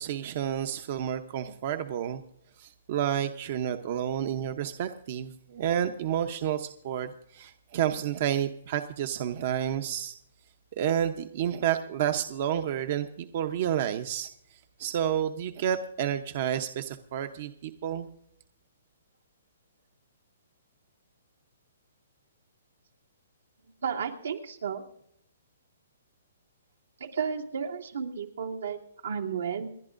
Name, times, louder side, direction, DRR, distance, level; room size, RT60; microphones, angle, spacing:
voice 1, 0.0-2.2 2.6-10.2 10.8-18.1, right 10 dB, 50° right, 8 dB, 0.8 m, -30 dB
voice 2, 23.8-24.8 27.0-29.7, right 6 dB, 85° right, 1 dB, 2.3 m, -33 dB
29.5 x 11.0 x 2.6 m, 0.72 s
hypercardioid pair, 150°, 0 cm